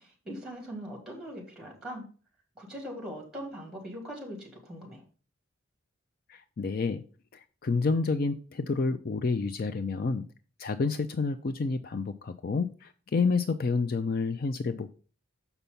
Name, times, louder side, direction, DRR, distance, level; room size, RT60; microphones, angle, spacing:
voice 1, 0.0-2.1 2.5-5.0, equal, 5° right, 0 dB, 2.8 m, -41 dB
voice 2, 6.3-7.0 7.6-10.2 10.6-14.9, left 4 dB, 45° left, 10 dB, 0.4 m, -29 dB
7.0 x 5.7 x 5.3 m, 0.38 s
head